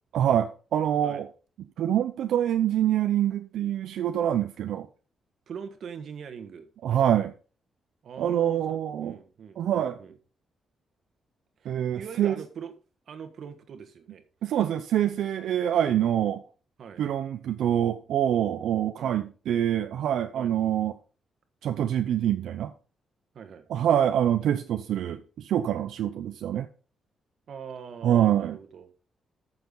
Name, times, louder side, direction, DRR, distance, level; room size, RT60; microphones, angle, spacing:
voice 1, 0.1-1.3 1.8-4.9 6.8-7.3 8.2-9.2 9.6-10.0 11.6-12.4 14.4-16.4 17.0-21.0 21.6-22.7 23.7-26.7 28.0-28.6, right 10 dB, 80° right, 0.7 m, -25 dB
voice 2, 5.5-6.7 8.0-10.1 11.6-12.7 13.1-14.2 16.8-17.0 19.0-19.2 20.3-20.5 23.3-23.6 27.5-28.9, right 7 dB, 55° right, 1.5 m, -42 dB
13.5 x 6.8 x 3.9 m
wide cardioid pair, 165°, 0 cm